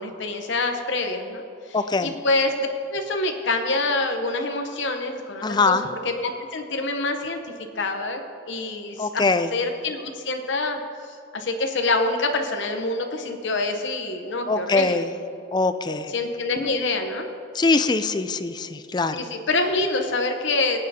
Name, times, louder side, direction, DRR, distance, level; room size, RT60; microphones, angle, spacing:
voice 1, 0.0-5.8 6.0-7.4 7.8-8.2 8.5-10.8 11.3-15.1 16.1-17.3 19.1-20.8, left 2 dB, 60° left, 5 dB, 0.8 m, -26 dB
voice 2, 1.7-2.1 5.4-5.8 9.0-9.5 14.5-15.1 15.5-16.1 17.5-19.1, left 3 dB, 20° left, 11 dB, 0.3 m, -22 dB
21.5 x 9.0 x 2.8 m, 2.5 s
head